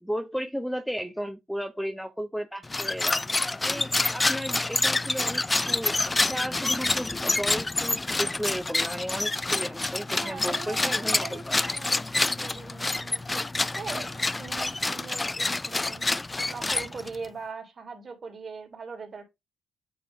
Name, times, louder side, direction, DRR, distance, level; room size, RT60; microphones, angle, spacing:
voice 1, 0.0-6.0 6.2-11.6, equal, ahead, 0.8 m, -34 dB
sound 1, 2.6-17.3, left 2 dB, 20° left, 0.4 m, -27 dB
voice 2, 10.2-16.1 16.5-19.2, right 5 dB, 40° right, 3.4 m, -41 dB
8.8 x 3.2 x 5.3 m
cardioid pair, 90°, 0 cm